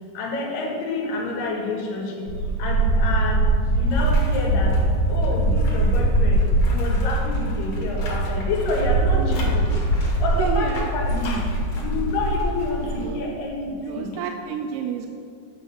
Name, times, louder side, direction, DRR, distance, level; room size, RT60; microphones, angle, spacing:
voice 1, 0.2-2.3 2.6-3.5 3.7-4.8 5.1-9.7 10.2-11.5 11.8-14.2, left 2 dB, 70° left, -1 dB, 3.3 m, -28 dB
sound 1, 2.3-13.1, right 2 dB, 55° left, 2.8 m, -22 dB
voice 2, 9.2-9.6 10.4-10.9 13.0-13.3 13.8-15.1, right 7 dB, 80° right, 4 dB, 2.0 m, -30 dB
9.7 x 5.3 x 6.8 m, 2.3 s
omnidirectional pair, 4.1 m